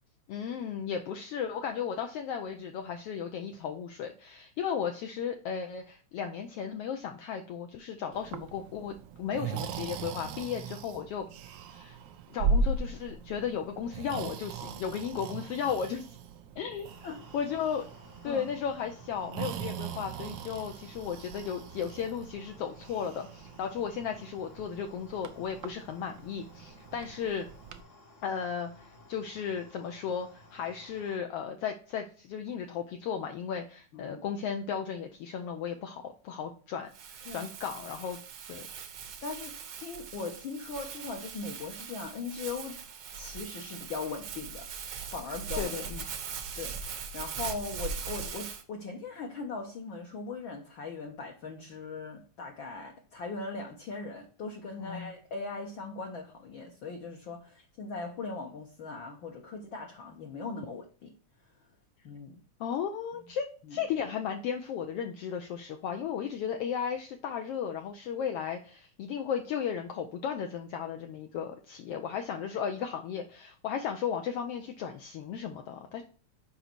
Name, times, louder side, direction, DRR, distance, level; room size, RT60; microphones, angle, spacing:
voice 1, 0.3-8.9 9.2-12.0 12.3-16.0 16.6-16.9 17.3-17.9 18.2-27.5 28.2-38.2 38.5-38.7 45.6-46.0 54.8-55.1 62.6-76.0, left 7 dB, 80° left, 1.3 m, -35 dB
Breathing, 8.1-27.8, right 4 dB, 80° right, 1.3 m, -38 dB
sound 1, 16.8-31.2, left 2 dB, 45° left, 1.0 m, -56 dB
voice 2, 33.9-34.3 37.2-37.5 39.2-42.8 43.1-44.7 45.1-45.7 46.6-61.1 62.0-62.4 63.6-63.8, left 4 dB, 65° left, 1.2 m, -39 dB
Crumpling crinkling, 36.9-48.6, right 6 dB, 65° right, 1.3 m, -40 dB
6.8 x 5.1 x 4.4 m
omnidirectional pair, 3.5 m